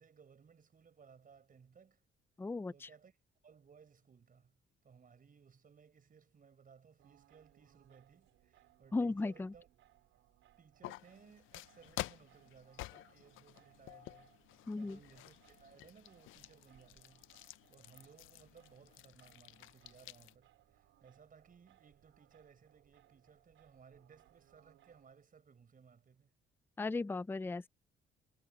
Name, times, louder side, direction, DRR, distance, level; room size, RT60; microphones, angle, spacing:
voice 1, 0.0-2.0 2.7-3.2 3.4-9.7 10.6-14.4 14.8-26.3, right 6 dB, 45° right, 4.9 m, -62 dB
voice 2, 2.4-2.9 8.9-9.5 14.7-15.0 26.8-27.7, left 3 dB, 10° left, 0.4 m, -36 dB
Singing, 7.0-25.1, right 13 dB, 85° right, 5.2 m, -69 dB
sound 1, 10.8-20.3, left 17 dB, 85° left, 0.4 m, -50 dB
cardioid pair, 90°, 20 cm